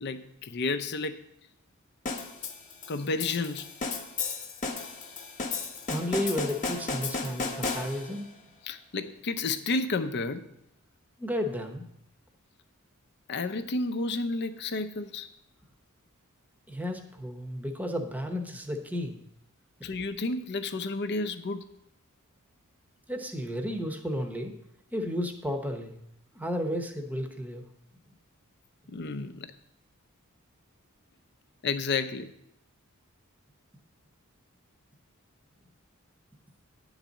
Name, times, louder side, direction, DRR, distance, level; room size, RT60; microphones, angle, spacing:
voice 1, 0.0-1.2 2.9-3.7 8.6-10.4 13.3-15.3 19.8-21.6 28.9-29.5 31.6-32.3, left 3 dB, 50° left, 9 dB, 0.6 m, -31 dB
sound 1, 2.1-8.3, left 4 dB, 35° left, 1.0 m, -34 dB
voice 2, 5.9-8.3 11.2-11.9 16.7-19.2 23.1-24.5 24.9-26.0 26.3-27.6, equal, 5° right, 4 dB, 0.8 m, -32 dB
10.0 x 4.0 x 7.2 m, 0.77 s
head